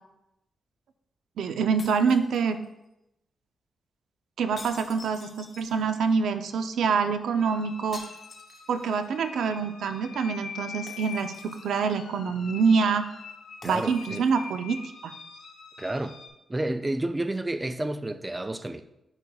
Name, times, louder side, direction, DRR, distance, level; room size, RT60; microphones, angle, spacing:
voice 1, 1.4-2.6 4.4-8.0 8.7-13.0 13.6-15.1, right 5 dB, 80° right, 0.5 m, -26 dB
sound 1, 1.8-2.9 4.6-6.1 7.9-9.1 9.5-9.6 10.9-11.9 13.6-14.6, left 3 dB, 40° left, 0.8 m, -48 dB
sound 2, 7.4-16.3, left 5 dB, 75° left, 0.9 m, -44 dB
voice 2, 13.6-14.3 15.8-16.2 16.5-18.8, right 1 dB, 15° right, 0.3 m, -30 dB
9.7 x 4.4 x 2.3 m
wide cardioid pair, 145°, 0 cm